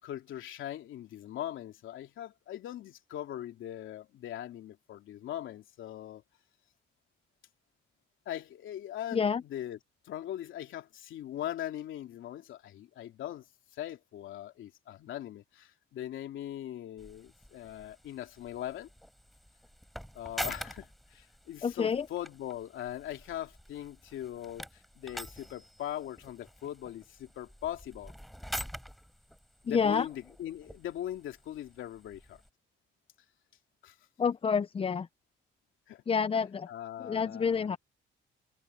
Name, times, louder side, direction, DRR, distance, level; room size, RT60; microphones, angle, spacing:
voice 1, 0.0-6.2 8.2-9.8 10.0-13.4 13.7-18.9 20.1-28.1 29.6-32.4 33.8-33.9 35.9-36.0 36.7-37.8, left 12 dB, 80° left, 2.9 m, -40 dB
voice 2, 9.1-9.4 21.6-22.1 29.7-30.1 34.2-35.1 36.1-36.7 37.0-37.8, left 6 dB, 30° left, 0.5 m, -28 dB
sound 1, 17.0-32.5, equal, ahead, 4.5 m, -46 dB
cardioid pair, 90°, 20 cm